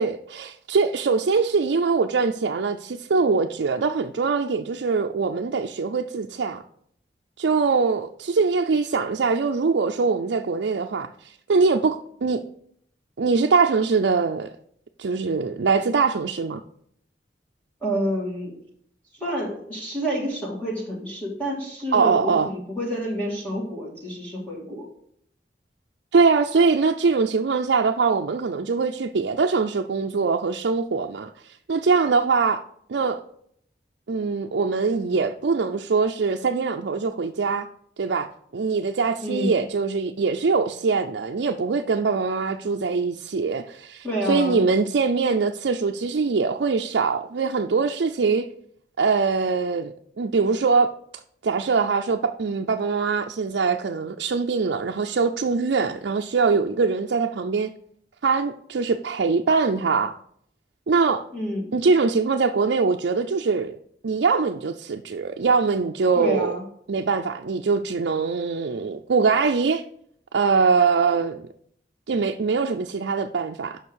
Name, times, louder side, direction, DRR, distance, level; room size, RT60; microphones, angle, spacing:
voice 1, 0.0-6.6 7.4-12.4 13.2-14.5 15.0-16.6 21.9-22.5 26.1-32.6 32.9-33.2 34.1-37.7 38.0-38.3 38.5-48.5 49.0-50.9 51.4-57.7 58.2-60.1 60.9-61.3 61.7-63.8 64.0-66.5 66.9-69.8 70.3-71.5 72.1-73.8, right 4 dB, 75° right, 0.5 m, -22 dB
voice 2, 17.8-18.6 19.2-24.9 39.2-39.6 44.0-44.6 61.3-61.7 66.2-66.6, equal, 10° left, 2.1 m, -28 dB
7.2 x 5.7 x 6.3 m
head